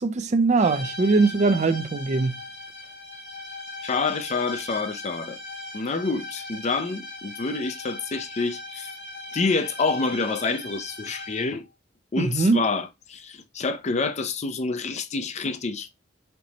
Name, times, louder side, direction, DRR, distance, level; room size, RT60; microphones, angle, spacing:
voice 1, 0.0-2.4 12.2-12.6, right 3 dB, 40° right, 0.4 m, -21 dB
sound 1, 0.6-11.7, left 1 dB, 55° left, 1.8 m, -39 dB
voice 2, 3.8-5.4 5.7-8.9 9.3-11.7 12.1-15.9, left 4 dB, 35° left, 0.5 m, -27 dB
4.5 x 4.1 x 2.8 m
head